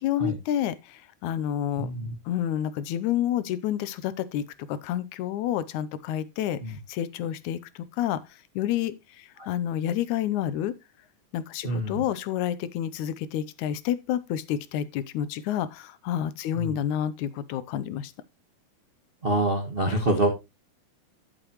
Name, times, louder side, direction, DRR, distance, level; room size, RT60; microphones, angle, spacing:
voice 1, 0.0-1.9 2.3-8.2 8.6-10.7 11.3-18.1, left 11 dB, 80° left, 2.1 m, -29 dB
voice 2, 1.8-2.1 9.4-9.5 11.6-12.0 16.6-16.7 19.2-20.3, right 2 dB, 40° right, 0.7 m, -26 dB
12.5 x 7.1 x 3.0 m
omnidirectional pair, 3.5 m